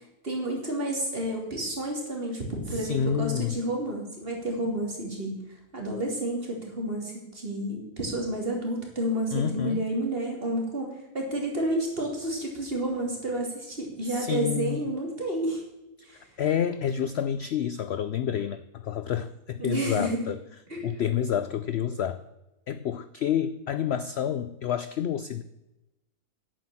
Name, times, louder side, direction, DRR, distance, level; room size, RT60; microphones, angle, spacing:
voice 1, 0.2-5.4 5.7-15.6 16.1-16.2 19.6-20.3 20.7-20.9, right 1 dB, 35° right, 0 dB, 3.2 m, -30 dB
voice 2, 2.7-3.6 9.3-9.8 14.1-14.8 16.0-20.4 20.8-22.2 22.7-25.4, left 9 dB, 65° left, 13 dB, 0.6 m, -29 dB
10.5 x 8.5 x 7.5 m, 0.96 s
omnidirectional pair, 1.6 m